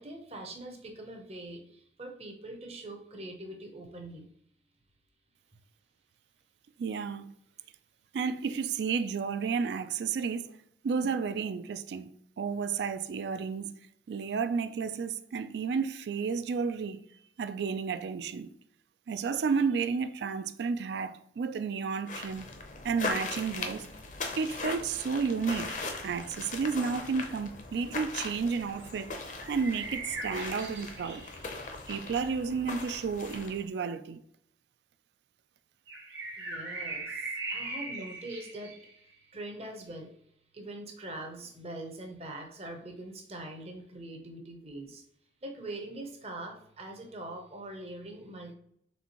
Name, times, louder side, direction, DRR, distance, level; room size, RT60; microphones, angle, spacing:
voice 1, 0.0-4.3 36.3-40.1 40.5-45.0 45.4-48.5, right 1 dB, 35° right, 0.6 m, -43 dB
voice 2, 6.8-7.3 8.1-10.6 10.8-12.1 12.4-13.8 14.1-17.0 17.4-18.5 19.1-22.5 22.8-23.9 24.4-25.7 26.0-29.1 29.5-31.2 31.9-34.2, right 5 dB, 65° right, 0.3 m, -32 dB
sound 1, 22.1-33.6, left 3 dB, 40° left, 0.6 m, -39 dB
sound 2, 25.7-26.6 29.4-32.6 35.9-39.1, right 3 dB, 80° right, 1.0 m, -40 dB
4.2 x 3.5 x 2.9 m
head